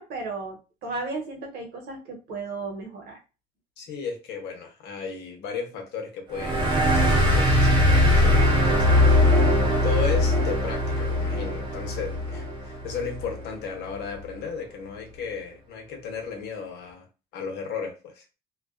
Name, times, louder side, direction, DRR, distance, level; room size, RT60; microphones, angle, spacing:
voice 1, 0.0-3.2, right 3 dB, 75° right, 2 dB, 1.0 m, -34 dB
voice 2, 3.8-9.3 9.5-17.1 17.3-18.2, left 6 dB, 80° left, 3 dB, 0.8 m, -35 dB
sound 1, 6.3-13.4, left 1 dB, 25° right, 0.8 m, -21 dB
2.3 x 2.2 x 2.4 m, 0.31 s
cardioid pair, 110°, 17 cm